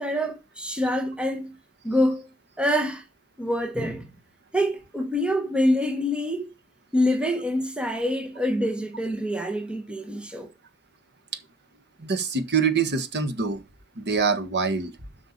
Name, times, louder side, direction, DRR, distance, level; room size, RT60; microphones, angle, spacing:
voice 1, 0.0-1.5 1.8-2.3 2.6-3.0 3.4-4.1 4.5-6.5 6.9-10.5, equal, 5° right, 1.2 m, -26 dB
voice 2, 12.0-13.6 14.0-14.9, right 5 dB, 50° right, 1.5 m, -25 dB
8.0 x 6.0 x 7.2 m
head